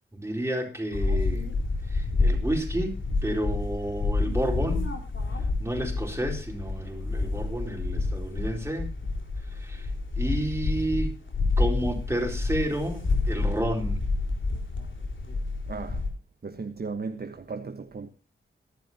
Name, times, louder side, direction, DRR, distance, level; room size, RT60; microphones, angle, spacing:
voice 1, 0.1-1.5 1.9-3.0 3.2-4.9 5.6-8.9 9.5-9.9 10.2-11.1 11.6-14.0, right 1 dB, 10° right, 4.4 m, -31 dB
sound 1, 0.9-16.1, left 3 dB, 65° left, 4.4 m, -28 dB
voice 2, 16.4-18.1, right 4 dB, 45° right, 1.3 m, -35 dB
22.5 x 11.5 x 2.9 m
wide cardioid pair, 120°, 21 cm